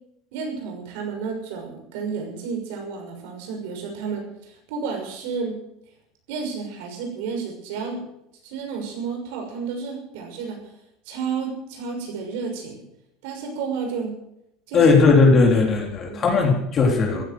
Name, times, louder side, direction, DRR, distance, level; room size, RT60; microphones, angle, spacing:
voice 1, 0.3-5.6 6.3-8.0 8.4-10.7 11.0-12.8 13.2-14.1 14.7-14.8 16.0-16.4, right 5 dB, 80° right, 3 dB, 6.3 m, -31 dB
voice 2, 14.7-17.2, left 4 dB, 35° left, 1 dB, 3.7 m, -17 dB
14.5 x 11.5 x 8.0 m, 0.79 s
supercardioid pair, 120°, 0 cm